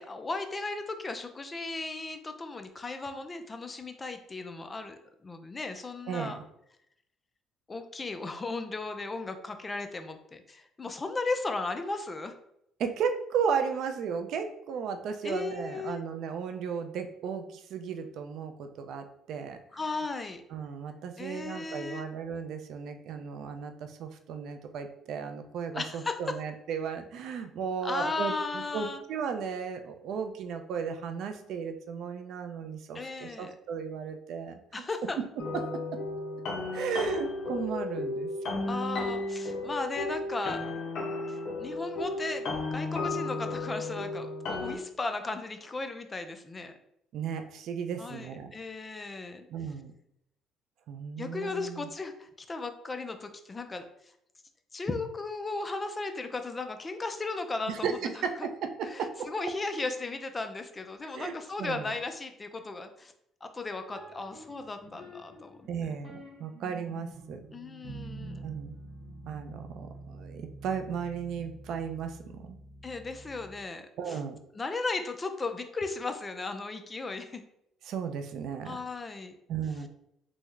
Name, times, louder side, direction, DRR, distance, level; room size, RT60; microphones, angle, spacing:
voice 1, 0.0-6.4 7.7-12.3 15.2-16.0 19.7-20.4 21.2-22.1 25.7-26.2 27.8-29.0 32.9-33.5 34.7-35.2 38.7-40.6 41.3-46.7 48.0-49.5 51.2-53.8 54.7-58.5 58.8-63.1 63.4-65.6 67.5-68.5 72.8-74.2 74.5-77.4 78.7-79.4, left 3 dB, 20° left, 7 dB, 0.3 m, -36 dB
voice 2, 6.1-6.4 12.8-19.6 20.5-34.6 36.7-38.3 47.1-48.5 49.5-49.9 50.9-51.9 57.7-59.3 61.0-61.9 65.7-67.4 68.4-68.8 69.2-72.6 74.0-74.4 77.8-78.8 79.5-79.9, right 6 dB, 65° right, 6 dB, 0.4 m, -35 dB
sound 1, 35.4-44.8, left 2 dB, 60° left, 0.6 m, -34 dB
sound 2, 63.9-73.7, right 1 dB, 5° left, 1.3 m, -47 dB
3.5 x 2.0 x 3.1 m, 0.76 s
cardioid pair, 130°, 0 cm